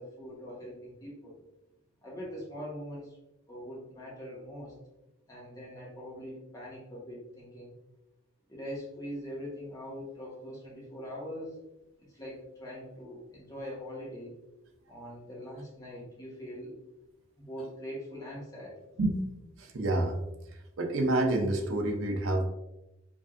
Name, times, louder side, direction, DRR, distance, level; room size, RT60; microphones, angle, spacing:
voice 1, 0.0-1.4 2.0-3.2 3.5-4.7 5.3-7.7 8.5-11.6 12.1-14.3 14.9-16.8 17.4-18.8, equal, 15° left, -5 dB, 1.1 m, -42 dB
voice 2, 19.7-20.2 20.8-22.5, right 2 dB, 75° right, 3 dB, 0.6 m, -27 dB
4.7 x 2.6 x 2.5 m, 0.93 s
head